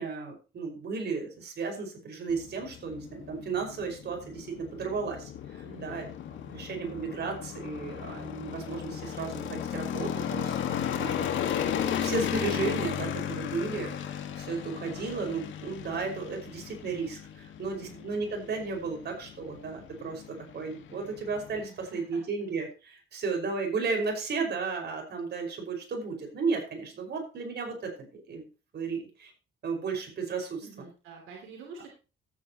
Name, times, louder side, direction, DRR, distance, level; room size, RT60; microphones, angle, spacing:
voice 1, 0.0-11.3 12.0-28.5 28.7-29.3 29.6-30.9, right 4 dB, 55° right, 2 dB, 5.4 m, -34 dB
sound 1, 2.3-21.6, left 9 dB, 75° left, 1.7 m, -35 dB
voice 2, 5.6-6.1 17.7-18.1 21.7-22.2 30.6-31.9, right 5 dB, 90° right, 1 dB, 3.0 m, -48 dB
14.0 x 9.1 x 3.0 m, 0.32 s
cardioid pair, 90°, 20 cm